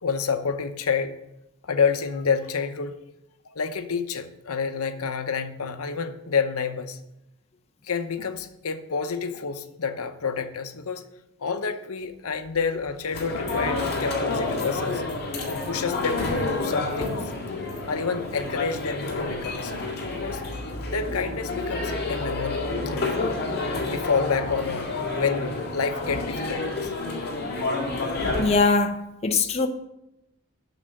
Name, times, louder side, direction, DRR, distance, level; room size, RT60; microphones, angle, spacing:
voice 1, 0.0-1.2 1.6-2.9 3.4-7.0 7.8-11.0 11.4-15.0 15.5-17.2 17.9-19.7 20.1-20.4 20.9-23.4 23.9-26.9, left 5 dB, 80° left, 0.8 m, -29 dB
sound 1, 12.0-18.6, left 1 dB, ahead, 2.7 m, -49 dB
sound 2, 13.1-28.6, left 2 dB, 45° left, 2.0 m, -29 dB
voice 2, 28.4-29.7, left 3 dB, 30° left, 0.6 m, -22 dB
8.0 x 6.2 x 7.5 m
head